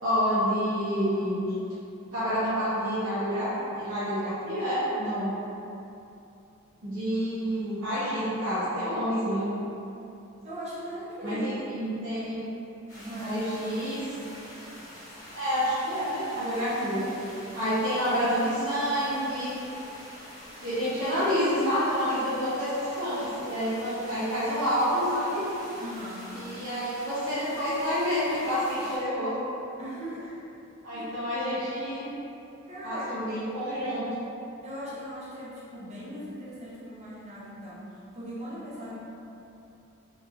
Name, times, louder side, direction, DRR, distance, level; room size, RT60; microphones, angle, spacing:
voice 1, 0.0-1.4 2.1-5.4 6.8-9.6 11.2-12.4 13.0-14.0 15.3-17.0 17.5-19.5 20.6-25.4 26.3-29.3 30.8-32.1 32.8-34.1, equal, 75° right, -13 dB, 0.8 m, -28 dB
voice 2, 10.4-11.5 13.1-14.0 16.7-17.1 22.2-22.3 25.8-26.4 29.8-30.3 30.9-31.3 32.7-33.2 34.6-39.0, equal, 35° right, -8 dB, 0.6 m, -39 dB
sound 1, 12.9-29.0, equal, 15° left, 0.9 m, -46 dB
3.0 x 2.5 x 2.3 m, 2.8 s
head